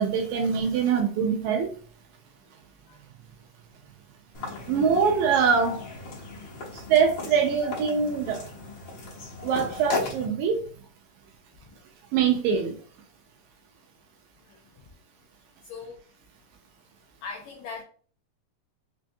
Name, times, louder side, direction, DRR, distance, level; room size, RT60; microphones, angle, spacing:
voice 1, 0.0-1.7 4.7-5.8 6.7-8.4 9.4-10.6 12.1-12.7, right 6 dB, 80° right, 3 dB, 1.8 m, -23 dB
sound 1, 4.3-10.3, left 3 dB, 65° left, 1.3 m, -36 dB
voice 2, 4.5-4.9 14.5-14.6 15.7-16.0 17.2-17.8, left 5 dB, 85° left, 1 dB, 1.6 m, -40 dB
5.2 x 2.2 x 2.6 m, 0.43 s
omnidirectional pair, 3.7 m